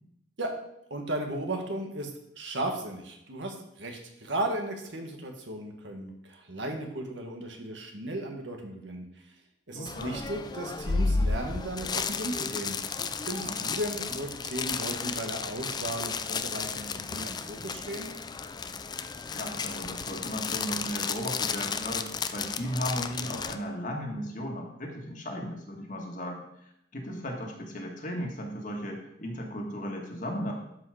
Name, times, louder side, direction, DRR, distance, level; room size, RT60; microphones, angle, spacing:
voice 1, 0.9-2.1 2.4-9.1 9.7-12.8 13.2-18.1, right 1 dB, 75° right, 3 dB, 1.8 m, -35 dB
voice 2, 9.7-10.3 13.4-13.7 19.3-30.5, equal, 45° left, 1 dB, 1.8 m, -36 dB
sound 1, 9.9-23.6, left 4 dB, 20° left, 0.4 m, -33 dB
12.0 x 5.2 x 5.0 m, 0.79 s
head